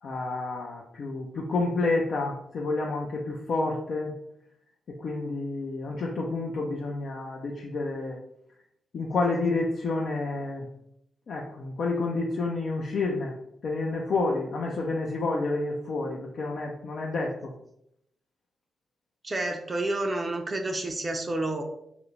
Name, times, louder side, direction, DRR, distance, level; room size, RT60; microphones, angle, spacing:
voice 1, 0.0-4.1 5.0-8.2 8.9-10.7 11.3-13.4 13.6-17.5, left 3 dB, 65° left, -1 dB, 0.3 m, -29 dB
voice 2, 19.2-21.6, right 2 dB, 35° right, 3 dB, 0.4 m, -29 dB
2.4 x 2.0 x 3.0 m, 0.77 s
supercardioid pair, 40°, 0 cm